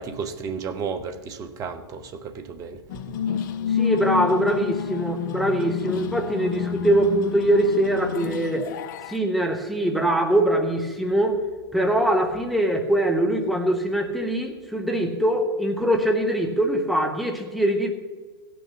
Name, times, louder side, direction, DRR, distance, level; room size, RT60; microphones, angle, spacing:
voice 1, 0.0-3.2, right 5 dB, 25° right, 8 dB, 1.2 m, -33 dB
sound 1, 2.9-9.2, left 8 dB, 50° left, 0.5 m, -29 dB
voice 2, 3.7-8.7 9.1-11.4 11.7-17.9, right 1 dB, ahead, 3 dB, 1.4 m, -22 dB
16.0 x 6.2 x 7.0 m, 1.3 s
figure-of-eight pair, 105°, 13 cm